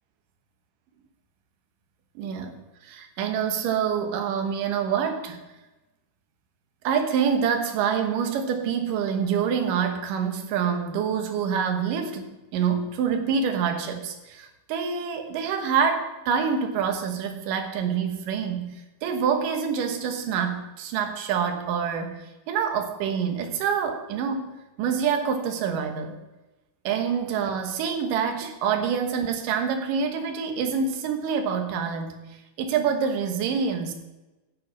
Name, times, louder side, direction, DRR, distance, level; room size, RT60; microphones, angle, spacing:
voice 1, 2.2-2.6 2.8-5.4 6.8-26.2 26.8-33.9, right 7 dB, 65° right, 6 dB, 2.5 m, -26 dB
14.0 x 5.6 x 6.3 m, 1.1 s
omnidirectional pair, 4.6 m